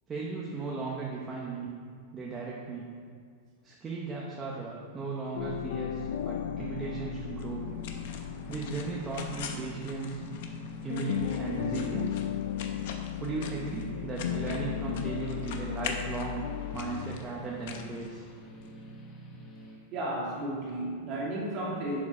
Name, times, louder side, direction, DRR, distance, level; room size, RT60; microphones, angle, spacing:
voice 1, 0.1-1.7 2.1-2.9 3.6-7.7 8.5-10.2 10.8-12.2 13.2-16.4 16.7-18.2, right 4 dB, 10° right, -4 dB, 0.8 m, -36 dB
sound 1, 5.3-10.6 10.9-17.2, left 10 dB, 70° left, 0.4 m, -36 dB
sound 2, 5.4-19.8, left 3 dB, 20° left, 1.1 m, -44 dB
sound 3, 7.4-18.7, left 6 dB, 50° left, 1.0 m, -44 dB
voice 2, 19.9-22.0, right 1 dB, 30° right, -4 dB, 2.4 m, -33 dB
11.0 x 7.3 x 4.3 m, 2.1 s
supercardioid pair, 180°, 0 cm